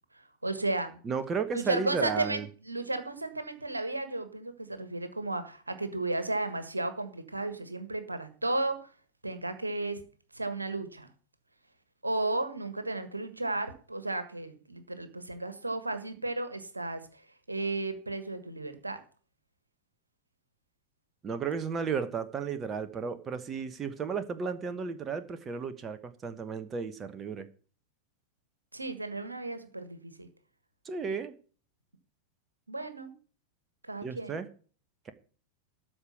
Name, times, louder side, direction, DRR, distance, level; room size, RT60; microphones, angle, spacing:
voice 1, 0.4-1.0 1.5-8.9 9.2-10.0 10.3-11.1 12.0-17.2 17.5-19.0 28.7-30.3 32.7-33.1 33.9-34.4, right 2 dB, 80° right, 11 dB, 1.5 m, -34 dB
voice 2, 1.0-2.5 21.2-27.5 30.8-31.3 34.0-34.5 35.0-35.1, right 5 dB, 25° right, 10 dB, 1.1 m, -34 dB
13.0 x 5.1 x 9.1 m, 0.41 s
figure-of-eight pair, 90°, 0 cm